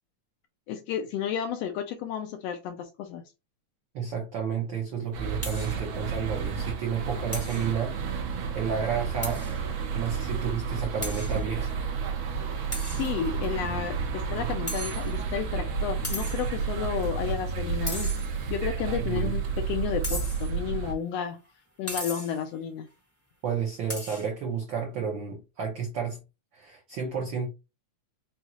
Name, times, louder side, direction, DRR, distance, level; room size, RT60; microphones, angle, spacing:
voice 1, 0.7-3.2 12.9-18.1 18.5-19.4 19.7-21.4 21.8-22.9, left 8 dB, 80° left, 1.5 m, -32 dB
voice 2, 3.9-8.0 8.5-9.4 9.9-11.7 19.0-19.3 23.4-26.2 26.5-27.5, right 6 dB, 90° right, 1.0 m, -31 dB
sound 1, 5.1-20.9, right 6 dB, 70° right, 2.0 m, -31 dB
sound 2, 5.4-5.8 6.1-6.2 6.6-6.7 7.3-7.7 9.2-9.6 10.0-10.1 11.0-11.4 12.7-13.4 14.7-15.4 16.0-16.6 17.9-18.6 20.0-20.6 21.9-22.4 23.9-24.3, equal, 10° left, 1.2 m, -37 dB
5.5 x 2.3 x 2.9 m
omnidirectional pair, 3.3 m